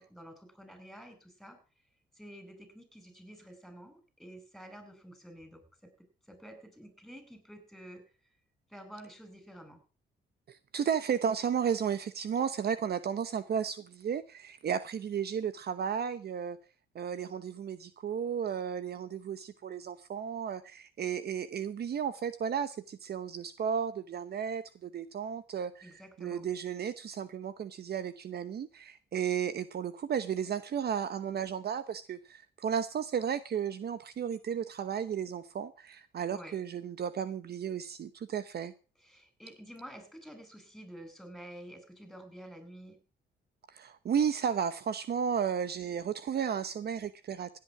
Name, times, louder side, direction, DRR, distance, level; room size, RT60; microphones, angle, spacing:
voice 1, 0.0-1.6 2.2-8.3 8.7-9.8 25.8-26.5 36.3-36.6 39.0-43.0, equal, ahead, 5.3 m, -50 dB
voice 2, 10.5-16.6 16.9-38.7 43.7-47.6, right 7 dB, 55° right, 0.9 m, -34 dB
16.5 x 8.6 x 6.0 m
cardioid pair, 90°, 20 cm